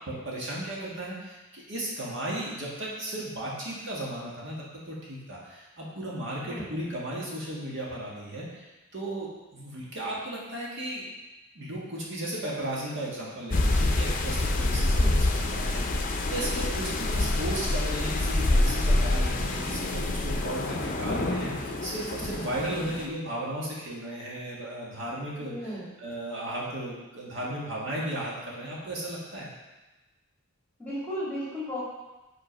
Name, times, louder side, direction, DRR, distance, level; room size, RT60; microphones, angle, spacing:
voice 1, 0.1-11.0 11.6-29.5, right 1 dB, 60° right, -5 dB, 1.8 m, -35 dB
sound 1, 13.5-23.1, left 2 dB, 40° left, 0.7 m, -26 dB
voice 2, 14.9-15.2 25.4-25.9 30.8-31.8, equal, 10° left, -7 dB, 2.8 m, -35 dB
6.4 x 5.5 x 5.2 m, 1.1 s
head